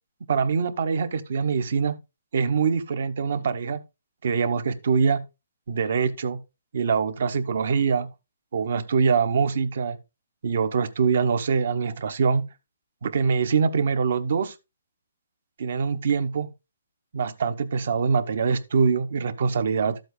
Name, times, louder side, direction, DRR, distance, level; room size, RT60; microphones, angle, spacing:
voice 1, 0.3-2.0 2.3-3.8 4.2-5.2 5.7-6.4 6.7-8.1 8.5-10.0 10.4-12.5 13.0-14.5 15.6-16.5 17.1-20.0, right 5 dB, 60° right, 1.1 m, -24 dB
13.0 x 7.9 x 2.2 m
hypercardioid pair, 165°, 0 cm